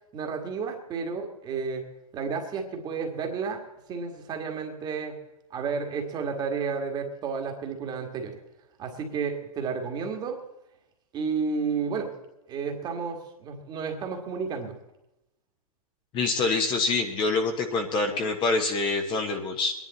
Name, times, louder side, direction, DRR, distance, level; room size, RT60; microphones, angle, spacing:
voice 1, 0.1-1.9 2.1-3.6 3.9-5.2 5.5-8.4 8.8-10.4 11.1-12.1 12.5-14.8, right 5 dB, 20° right, 3 dB, 1.8 m, -31 dB
voice 2, 16.1-19.7, left 3 dB, 25° left, 4 dB, 1.3 m, -26 dB
21.5 x 10.5 x 4.2 m, 0.91 s
hypercardioid pair, 135°, 19 cm